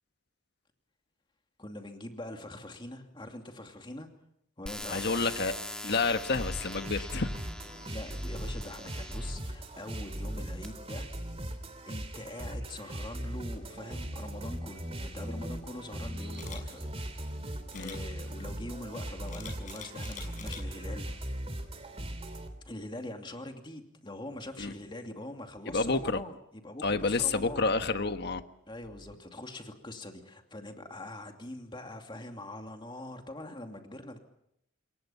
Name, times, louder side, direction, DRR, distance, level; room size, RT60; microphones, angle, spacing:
voice 1, 1.6-4.1 4.6-5.3 7.8-11.1 11.9-16.9 17.4-21.1 21.5-21.6 22.6-27.6 28.7-34.2, left 1 dB, 25° left, 4 dB, 2.6 m, -43 dB
sound 1, 4.7-9.4 10.1-10.7, left 1 dB, 5° left, 2.3 m, -43 dB
voice 2, 4.9-5.5 5.8-7.3 17.7-18.0 24.6-24.7 25.6-26.2 26.8-28.4, left 3 dB, 55° left, 8 dB, 1.4 m, -29 dB
sound 2, 6.3-22.5, right 1 dB, 30° right, 3.0 m, -39 dB
Camera, 16.3-16.6 17.7-18.0 19.3-20.6 21.1-21.4, left 7 dB, 40° left, 6.4 m, -45 dB
28.5 x 22.0 x 5.7 m, 0.76 s
head